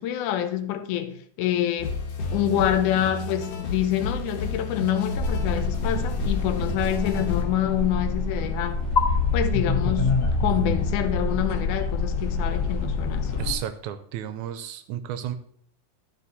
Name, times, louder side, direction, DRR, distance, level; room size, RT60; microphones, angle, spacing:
voice 1, 0.0-1.9 2.3-8.8 9.3-13.4, left 11 dB, 85° left, 2.2 m, -26 dB
sound 1, 1.8-7.4, left 2 dB, 60° left, 2.2 m, -32 dB
sound 2, 5.1-13.5, left 3 dB, 40° left, 1.8 m, -26 dB
voice 2, 13.4-15.4, right 10 dB, 85° right, 2.0 m, -32 dB
11.5 x 4.9 x 4.1 m
omnidirectional pair, 3.5 m